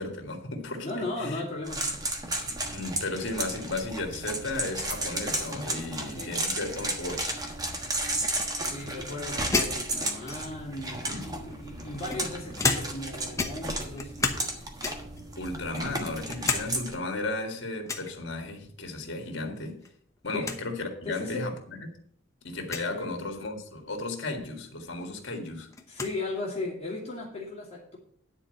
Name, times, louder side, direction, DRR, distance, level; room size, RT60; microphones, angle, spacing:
voice 1, 0.0-1.4 2.4-7.4 11.1-11.3 15.4-19.8 20.2-21.8 22.4-25.7, left 2 dB, 60° left, 2.0 m, -34 dB
voice 2, 0.8-1.9 6.2-6.3 8.6-14.7 15.7-16.0 20.3-20.5 21.0-21.5 22.9-23.1 25.9-28.0, left 2 dB, 30° left, 2.4 m, -37 dB
sound 1, 1.7-16.9, right 2 dB, 20° right, 1.3 m, -34 dB
sound 2, 9.5-10.7 11.5-13.1 13.4-14.5 14.8-15.2 15.7-16.7 17.0-17.1 17.9-18.1 19.6-19.9 20.2-20.3 20.4-20.6 21.4-21.5 22.6-22.9 24.6-24.7 25.0-26.2, left 3 dB, 15° left, 0.9 m, -31 dB
10.0 x 4.4 x 7.8 m
head